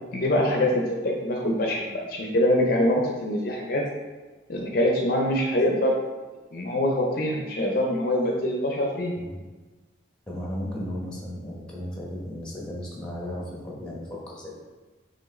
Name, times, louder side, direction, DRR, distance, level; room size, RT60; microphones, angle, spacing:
voice 1, 0.1-3.8 4.5-6.0 6.5-9.1, left 1 dB, 50° left, 0 dB, 0.5 m, -24 dB
voice 2, 10.3-14.6, left 1 dB, 5° left, -4 dB, 0.9 m, -35 dB
4.6 x 3.2 x 3.2 m, 1.3 s
head